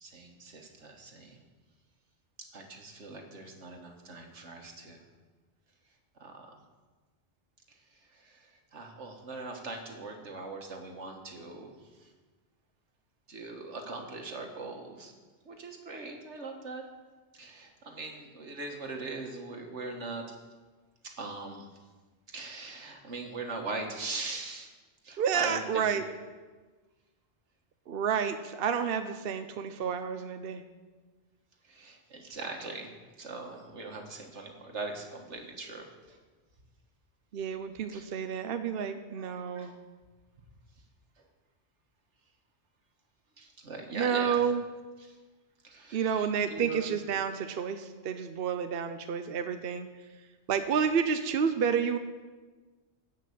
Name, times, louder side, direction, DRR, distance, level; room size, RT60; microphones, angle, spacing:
voice 1, 0.0-1.4 2.4-5.0 6.2-6.5 7.7-7.8 8.1-12.1 13.3-15.1 15.5-16.8 17.3-20.4 21.0-21.7 22.3-24.7 25.0-26.0 31.6-32.9 33.2-36.2 37.9-38.0 39.2-39.7 43.4-44.4 45.1-45.2 45.6-46.2 46.5-46.8, right 3 dB, 85° right, 3 dB, 1.9 m, -41 dB
voice 2, 25.2-26.0 27.9-30.6 37.3-39.7 43.9-44.6 45.9-49.9 50.5-52.0, right 7 dB, 60° right, 8 dB, 0.9 m, -30 dB
13.5 x 5.8 x 8.4 m, 1.3 s
omnidirectional pair, 1.2 m